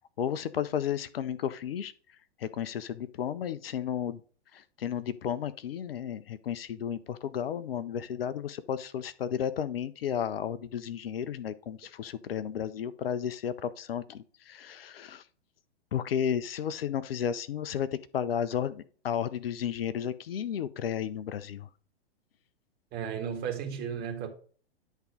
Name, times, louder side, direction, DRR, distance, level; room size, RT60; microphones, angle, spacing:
voice 1, 0.2-4.2 4.5-15.3 15.9-21.7, left 9 dB, 60° left, 0.7 m, -33 dB
voice 2, 22.9-24.3, right 7 dB, 30° right, 2.0 m, -34 dB
10.5 x 3.7 x 4.9 m
figure-of-eight pair, 110°, 32 cm